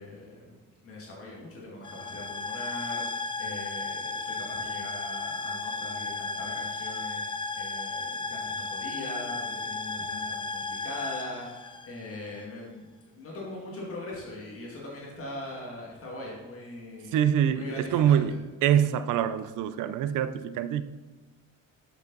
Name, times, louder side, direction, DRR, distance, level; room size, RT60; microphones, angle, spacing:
voice 1, 0.0-18.4, left 2 dB, 45° left, -3 dB, 2.1 m, -41 dB
sound 1, 1.8-12.4, left 3 dB, 15° left, 0.3 m, -34 dB
voice 2, 17.1-18.3 18.6-20.8, right 9 dB, 85° right, 13 dB, 0.6 m, -25 dB
8.0 x 7.1 x 4.0 m, 1.2 s
cardioid pair, 145°, 31 cm